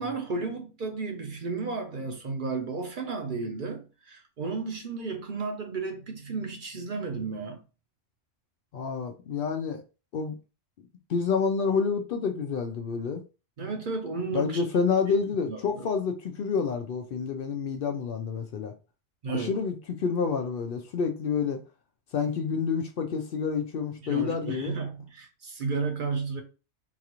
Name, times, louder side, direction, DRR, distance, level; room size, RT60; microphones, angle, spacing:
voice 1, 0.0-7.6 13.6-14.6 15.1-15.2 15.5-15.9 19.2-19.6 24.0-26.4, right 4 dB, 55° right, 0.7 m, -33 dB
voice 2, 8.7-9.8 10.1-10.3 11.1-13.2 14.3-18.7 19.3-21.6 22.1-24.8, left 5 dB, 60° left, 0.6 m, -28 dB
4.0 x 2.4 x 2.9 m
omnidirectional pair, 1.2 m